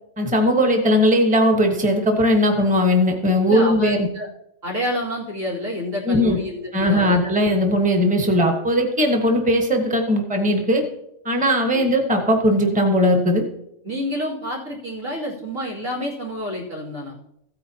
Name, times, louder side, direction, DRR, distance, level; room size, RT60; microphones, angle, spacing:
voice 1, 0.2-4.1 6.1-6.4 6.7-10.8 11.2-13.4, equal, 5° right, 3 dB, 1.1 m, -18 dB
voice 2, 3.5-4.3 4.6-7.2 11.7-11.9 13.8-17.1, left 1 dB, 80° right, -5 dB, 3.2 m, -28 dB
15.5 x 9.0 x 2.8 m, 0.79 s
omnidirectional pair, 1.4 m